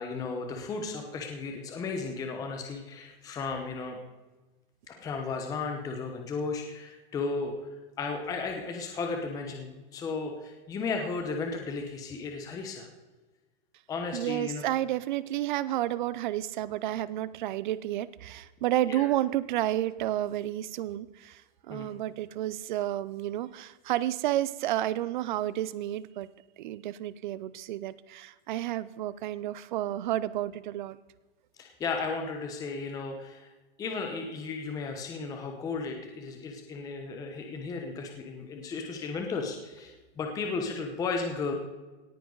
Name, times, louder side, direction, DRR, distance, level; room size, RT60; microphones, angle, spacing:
voice 1, 0.0-4.0 4.9-7.5 8.0-12.9 13.9-14.6 18.9-19.1 21.7-21.9 31.6-33.5 33.8-41.5, left 4 dB, 10° left, 3 dB, 0.9 m, -34 dB
voice 2, 14.1-21.4 21.7-26.3 26.6-31.0, right 13 dB, 50° right, 17 dB, 0.7 m, -31 dB
18.0 x 9.9 x 4.0 m, 1.2 s
supercardioid pair, 175°, 31 cm